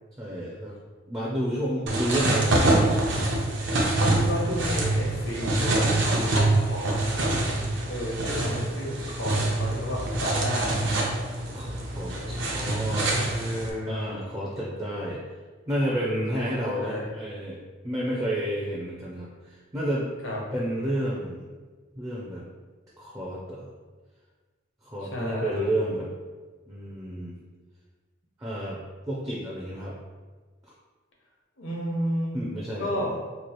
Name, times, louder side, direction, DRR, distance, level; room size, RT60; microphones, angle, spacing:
voice 1, 0.2-0.8 1.1-3.4 11.5-13.2 13.9-15.2 15.7-17.6 17.8-20.1 20.5-21.5 22.0-22.4 23.0-23.7 24.8-26.1 26.7-27.4 28.4-28.8 29.1-30.0 30.7-30.8 32.3-32.9, right 1 dB, 15° right, -5 dB, 0.4 m, -30 dB
sound 1, 1.9-13.7, right 2 dB, 70° right, 0.7 m, -25 dB
voice 2, 4.0-7.0 7.9-10.8 13.1-14.2 16.3-16.5 16.7-17.0 20.2-20.4 25.0-25.6 31.6-32.4 32.8-33.1, equal, 80° left, -3 dB, 0.9 m, -32 dB
3.0 x 2.4 x 4.3 m, 1.4 s
head